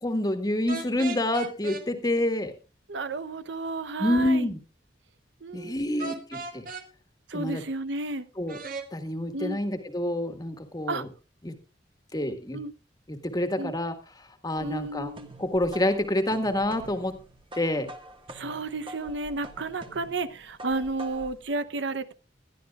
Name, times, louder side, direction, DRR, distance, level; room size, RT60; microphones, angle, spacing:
voice 1, 0.0-2.5 4.0-4.6 5.5-6.7 7.3-7.6 8.4-8.6 8.9-11.1 11.4-11.5 12.1-12.6 13.1-13.9 14.4-15.1 15.4-17.2 17.5-17.9, left 1 dB, 20° left, 7 dB, 1.7 m, -27 dB
sound 1, 0.7-1.8 6.0-6.9 8.5-8.9, right 4 dB, 50° right, 1.8 m, -36 dB
voice 2, 2.9-4.5 5.4-5.9 7.3-8.3 9.3-9.6 10.9-11.0 12.5-12.7 13.6-13.7 14.6-15.3 18.3-22.1, right 3 dB, 75° right, 13 dB, 0.8 m, -32 dB
sound 2, 14.6-21.4, right 1 dB, 30° right, 1.6 m, -46 dB
22.0 x 12.0 x 2.4 m, 0.31 s
head